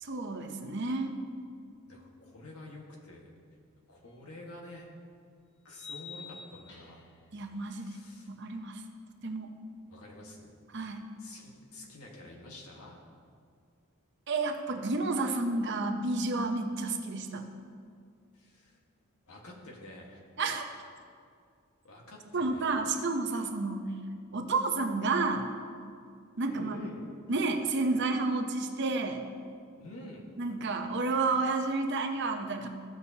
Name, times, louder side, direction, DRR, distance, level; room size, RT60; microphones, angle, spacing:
voice 1, 0.0-1.2 7.3-8.0 8.3-8.8 9.2-9.5 10.7-11.0 14.3-17.4 20.4-20.7 22.3-24.0 24.3-25.5 26.4-26.8 27.3-29.2 30.4-32.7, right 3 dB, 50° right, 5 dB, 0.7 m, -30 dB
voice 2, 1.9-3.3 3.9-4.9 5.6-7.1 7.7-8.3 9.9-10.5 11.2-13.0 18.3-18.8 19.3-20.2 21.8-22.8 26.5-27.0 29.8-30.3, left 1 dB, 85° left, -1 dB, 1.6 m, -48 dB
sound 1, 4.1-4.2 5.7-7.2, left 5 dB, 55° left, 1.2 m, -46 dB
15.0 x 6.3 x 2.8 m, 2.2 s
head